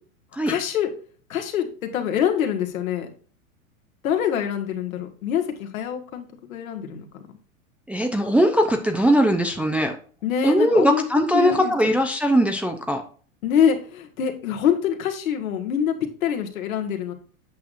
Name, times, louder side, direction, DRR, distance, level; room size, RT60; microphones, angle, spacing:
voice 1, 0.5-0.9 1.3-3.1 4.0-7.2 10.2-11.0 11.3-11.9 13.4-17.1, left 8 dB, 70° left, 4 dB, 1.7 m, -25 dB
voice 2, 7.9-10.0 10.4-13.0, equal, 5° right, 4 dB, 0.5 m, -20 dB
8.4 x 6.1 x 2.5 m, 0.42 s
hypercardioid pair, 105°, 42 cm